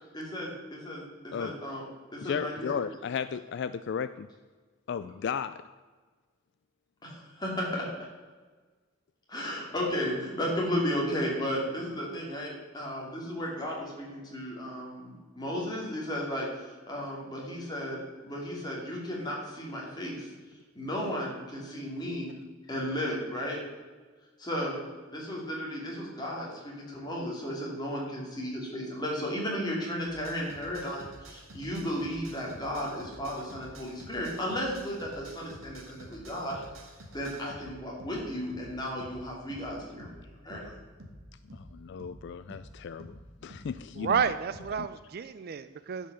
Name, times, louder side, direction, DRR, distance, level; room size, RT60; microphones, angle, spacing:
voice 1, 0.1-1.8 2.1-2.8 7.0-7.9 9.3-20.3 20.7-22.3 22.7-23.6 24.4-24.8 25.1-36.6 37.1-40.1 40.4-40.7, equal, 20° left, -3 dB, 2.8 m, -34 dB
voice 2, 2.2-4.3 4.9-5.6 41.5-44.2 44.8-44.9, left 7 dB, 55° left, 13 dB, 0.3 m, -35 dB
sound 1, 30.1-44.8, right 1 dB, 75° right, 1.8 m, -49 dB
voice 3, 43.9-46.1, right 6 dB, 50° right, 14 dB, 0.4 m, -30 dB
11.0 x 5.5 x 6.8 m, 1.4 s
head